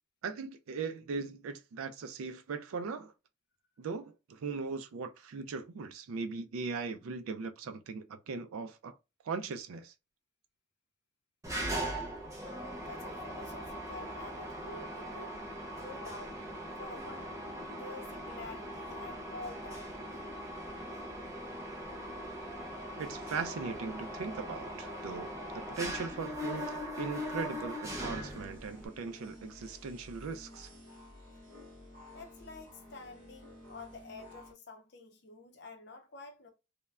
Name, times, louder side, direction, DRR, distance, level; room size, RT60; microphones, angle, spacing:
voice 1, 0.2-3.1 3.8-8.9 9.3-9.9 23.0-30.7, right 4 dB, 80° right, 0.4 m, -39 dB
Mechanisms, 11.4-28.9, equal, 15° right, 0.5 m, -40 dB
voice 2, 12.4-15.4 15.8-16.4 16.8-17.3 17.7-19.9 32.1-36.5, left 3 dB, 55° left, 0.5 m, -48 dB
sound 1, 27.9-34.5, left 1 dB, 40° right, 0.9 m, -53 dB
3.1 x 2.1 x 2.3 m
head